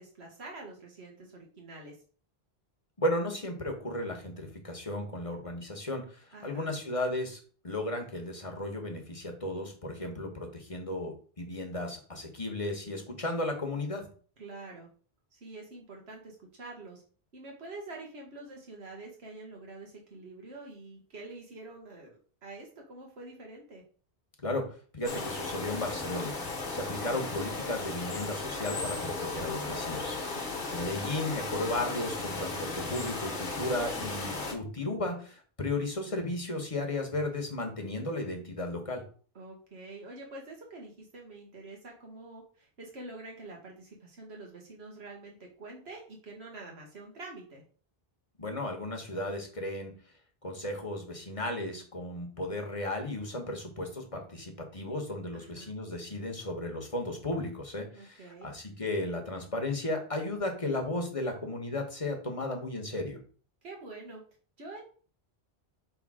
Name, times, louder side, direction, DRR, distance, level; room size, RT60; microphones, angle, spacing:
voice 1, 0.0-2.0 6.3-6.7 14.4-14.9 15.3-17.0 17.3-23.8 30.3-30.8 39.3-47.6 55.3-55.7 57.9-58.5 63.6-64.2 64.6-64.8, right 2 dB, 85° right, 0 dB, 1.6 m, -46 dB
voice 2, 3.0-7.4 7.6-14.0 24.4-24.6 24.9-26.3 26.7-30.2 30.7-39.0 48.4-49.9 50.4-63.2, left 1 dB, 35° left, 2 dB, 1.3 m, -34 dB
sound 1, 25.0-34.5, left 3 dB, 55° left, 1.4 m, -36 dB
6.1 x 3.3 x 4.8 m, 0.42 s
omnidirectional pair, 1.1 m